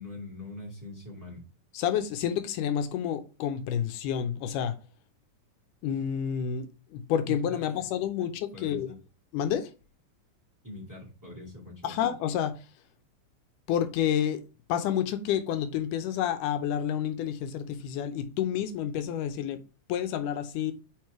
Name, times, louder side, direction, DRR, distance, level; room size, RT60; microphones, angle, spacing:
voice 1, 0.0-1.4 7.3-7.6 8.5-9.0 10.6-12.1, left 2 dB, 5° right, 2.0 m, -43 dB
voice 2, 1.7-4.8 5.8-6.7 6.9-8.9 9.3-9.7 11.8-12.6 13.7-14.4 14.7-19.6 19.9-20.7, left 9 dB, 85° left, 2.3 m, -29 dB
5.1 x 4.6 x 4.7 m
omnidirectional pair, 3.6 m